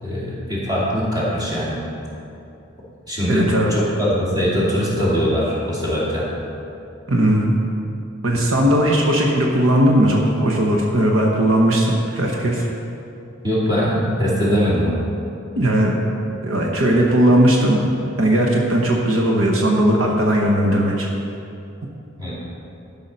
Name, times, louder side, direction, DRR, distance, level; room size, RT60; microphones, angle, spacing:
voice 1, 0.0-1.8 3.1-6.3 13.4-15.0 22.2-22.4, equal, 20° right, -7 dB, 2.5 m, -21 dB
voice 2, 3.3-3.7 7.1-7.5 8.2-12.7 15.6-16.0 16.4-17.8 18.2-21.1, right 1 dB, 75° right, -1 dB, 1.1 m, -17 dB
11.5 x 5.5 x 5.5 m, 2.7 s
head